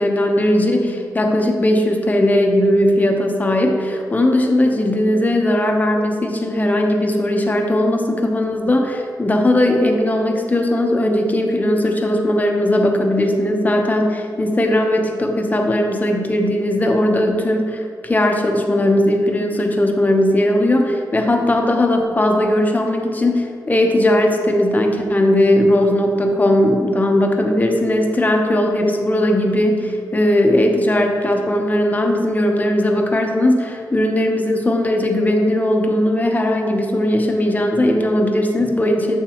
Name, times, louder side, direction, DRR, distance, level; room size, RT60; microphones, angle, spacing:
voice 1, 0.0-39.2, left 1 dB, 20° left, 3 dB, 0.9 m, -18 dB
8.2 x 6.8 x 3.0 m, 2.1 s
cardioid pair, 90°, 7 cm